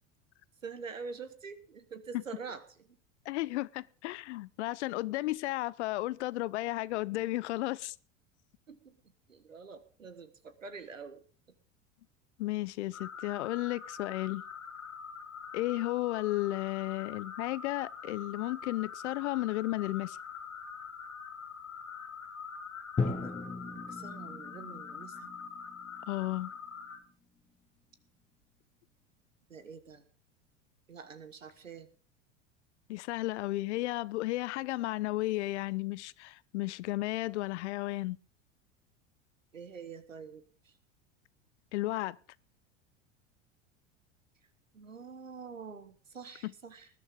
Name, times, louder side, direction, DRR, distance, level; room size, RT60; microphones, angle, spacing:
voice 1, 0.6-2.6 8.7-9.0 9.3-11.2 23.1-23.4 23.7-25.3 29.5-30.0 30.9-31.9 39.5-40.7 44.7-46.9, right 5 dB, 90° right, 1.6 m, -46 dB
voice 2, 3.3-8.0 12.4-14.4 15.5-20.2 26.1-26.5 32.9-38.2 41.7-42.2 46.4-46.5, left 18 dB, 65° left, 0.7 m, -33 dB
sound 1, 12.9-27.0, left 6 dB, 85° left, 2.0 m, -44 dB
Drum, 23.0-27.0, left 4 dB, 20° left, 1.9 m, -38 dB
19.5 x 11.5 x 3.7 m
figure-of-eight pair, 80°, 38 cm